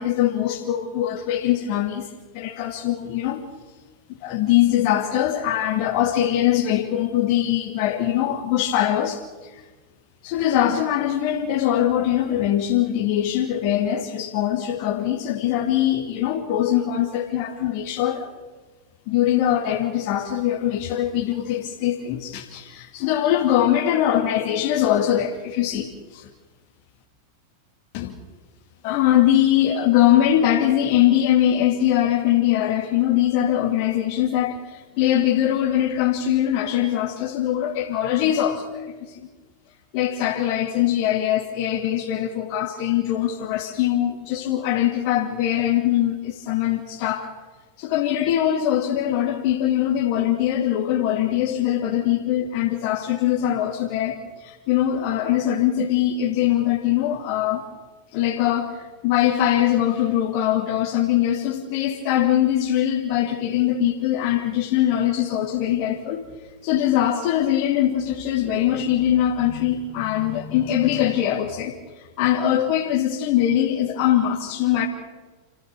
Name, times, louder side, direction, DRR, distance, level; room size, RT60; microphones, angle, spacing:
voice 1, 0.0-2.1 2.3-3.5 4.1-9.6 10.2-18.3 19.1-26.3 27.9-28.1 28.8-39.3 39.9-47.3 47.8-57.6 58.1-66.3 66.6-74.9, left 11 dB, 45° left, 2.3 m, -22 dB
29.5 x 14.0 x 6.8 m
figure-of-eight pair, 90°, 0 cm